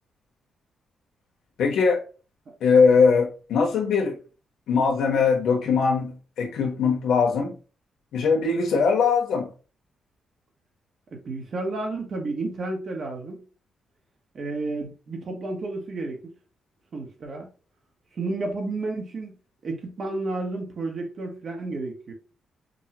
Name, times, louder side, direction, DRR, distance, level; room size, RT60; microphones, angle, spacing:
voice 1, 1.6-2.0 2.6-4.2 4.7-7.5 8.1-9.5, left 5 dB, 90° left, 1.1 m, -21 dB
voice 2, 11.1-13.4 14.3-16.3 16.9-17.5 18.1-19.3 19.6-22.1, right 2 dB, 50° right, 1.1 m, -31 dB
5.3 x 2.2 x 2.9 m
cardioid pair, 120°, 0 cm